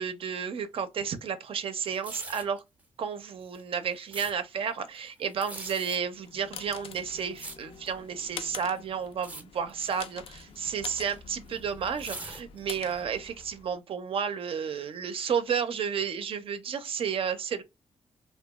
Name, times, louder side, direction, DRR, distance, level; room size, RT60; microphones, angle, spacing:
voice 1, 0.0-2.6 3.0-17.6, right 7 dB, 60° right, 0.5 m, -32 dB
sound 1, 1.9-2.6 3.4-4.3 5.3-6.0 6.8-8.0 8.4-8.8 9.1-9.4 9.7-10.0 10.8-12.9 13.4-13.5, right 2 dB, 15° right, 0.5 m, -42 dB
sound 2, 6.0-13.8, left 6 dB, 60° left, 0.4 m, -46 dB
2.8 x 2.2 x 2.3 m
cardioid pair, 100°, 11 cm